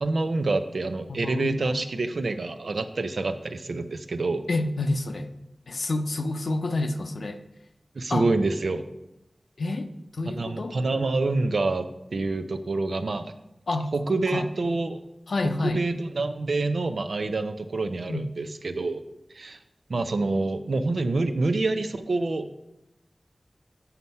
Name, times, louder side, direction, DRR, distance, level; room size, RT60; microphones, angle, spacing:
voice 1, 0.0-4.4 7.9-8.8 10.3-13.3 13.9-15.0 15.4-19.0 19.3-19.6 19.9-22.5, right 3 dB, 80° right, 9 dB, 0.6 m, -27 dB
voice 2, 1.1-1.7 4.5-5.3 5.7-7.4 8.1-8.3 9.6-9.9 10.1-10.8 13.7-14.5 15.3-15.8 18.1-18.2, left 2 dB, 85° left, 5 dB, 0.6 m, -28 dB
7.9 x 5.8 x 5.4 m, 0.88 s
wide cardioid pair, 75°, 0 cm